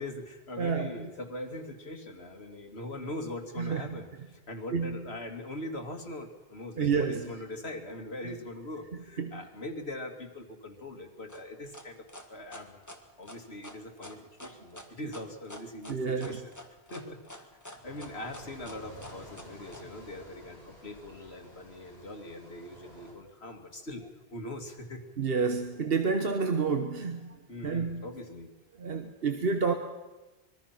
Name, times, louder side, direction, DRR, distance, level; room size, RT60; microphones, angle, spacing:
voice 1, 0.0-12.8 13.2-16.4 16.9-17.2 17.6-24.0 24.3-25.0 27.5-28.5, left 1 dB, 75° left, 4 dB, 2.6 m, -41 dB
voice 2, 0.6-1.1 3.6-4.0 4.7-5.0 6.8-7.3 8.2-8.3 9.2-9.4 15.0-15.1 15.9-16.4 25.2-28.1 28.8-29.7, right 5 dB, 65° right, 6 dB, 1.4 m, -30 dB
sound 1, 11.3-19.8, left 1 dB, 15° left, 1.8 m, -47 dB
sound 2, 17.8-23.1, equal, 40° left, 6.9 m, -51 dB
25.0 x 21.5 x 5.9 m, 1.1 s
omnidirectional pair, 1.1 m